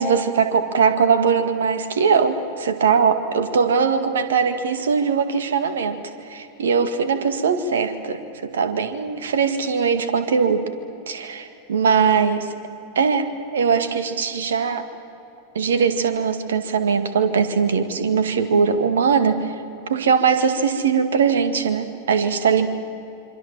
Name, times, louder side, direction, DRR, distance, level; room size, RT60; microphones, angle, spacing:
voice 1, 0.0-10.6 11.1-12.5 13.0-14.8 15.5-19.6 19.9-22.7, right 6 dB, 65° right, 10 dB, 2.0 m, -20 dB
26.5 x 25.5 x 7.4 m, 2.9 s
figure-of-eight pair, 90°, 0 cm